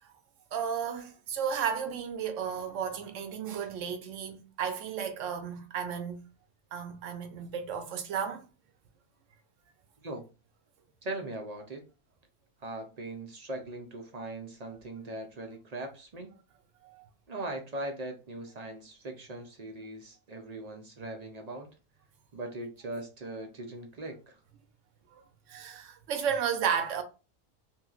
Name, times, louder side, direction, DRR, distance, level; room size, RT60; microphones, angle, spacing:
voice 1, 0.5-6.2 6.7-8.4 16.8-17.0 25.5-27.0, right 7 dB, 75° right, 1.0 m, -33 dB
voice 2, 11.0-11.8 12.6-16.3 17.3-21.7 22.3-24.4, right 2 dB, 50° right, 0.5 m, -40 dB
3.1 x 2.7 x 2.3 m
omnidirectional pair, 1.3 m